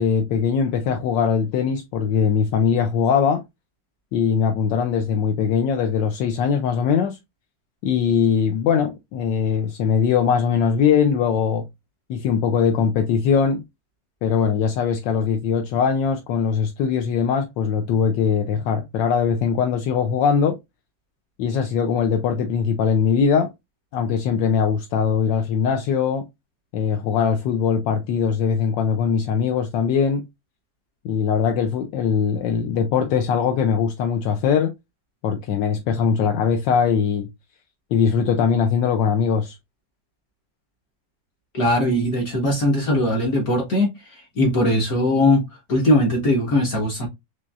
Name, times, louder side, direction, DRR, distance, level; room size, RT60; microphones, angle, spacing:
voice 1, 0.0-3.4 4.1-7.2 7.8-11.6 12.1-13.6 14.2-20.6 21.4-23.5 23.9-26.3 26.7-30.3 31.0-34.7 35.2-37.3 37.9-39.6, left 7 dB, 80° left, 1.3 m, -21 dB
voice 2, 41.5-47.1, left 1 dB, 55° left, 1.4 m, -20 dB
4.3 x 3.0 x 2.3 m
omnidirectional pair, 2.0 m